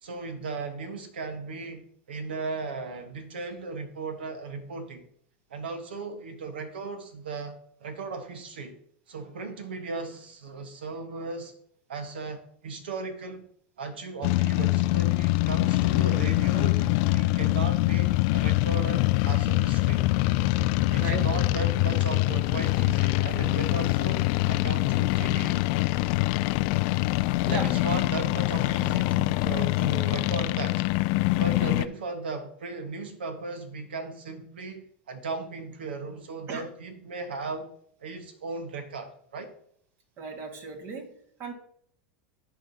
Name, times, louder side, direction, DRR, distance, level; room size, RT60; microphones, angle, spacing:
voice 1, 0.0-5.0 5.5-8.8 9.1-11.5 11.9-13.5 13.8-20.0 20.9-25.7 27.4-30.8 31.3-37.7 38.0-39.5, right 3 dB, 80° right, 1.2 m, -36 dB
sound 1, 14.2-31.9, left 19 dB, 60° left, 0.3 m, -24 dB
voice 2, 40.2-41.5, right 4 dB, 45° right, 1.7 m, -36 dB
14.0 x 4.7 x 2.8 m
hypercardioid pair, 90°, 5 cm